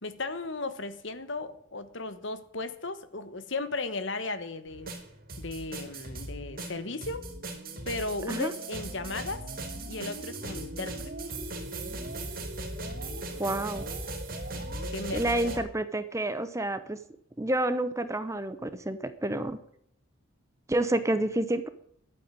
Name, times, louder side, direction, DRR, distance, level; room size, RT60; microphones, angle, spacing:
voice 1, 0.0-4.9 5.4-7.2 7.9-9.4 9.9-11.3 13.1-13.6 14.9-15.4, left 3 dB, 60° left, 12 dB, 1.3 m, -36 dB
sound 1, 4.7-15.6, right 2 dB, 40° right, 2.7 m, -38 dB
voice 2, 13.4-13.8 15.1-17.0 17.4-19.6 20.7-21.7, right 1 dB, 15° right, 11 dB, 0.8 m, -29 dB
11.5 x 9.2 x 8.9 m, 0.68 s
head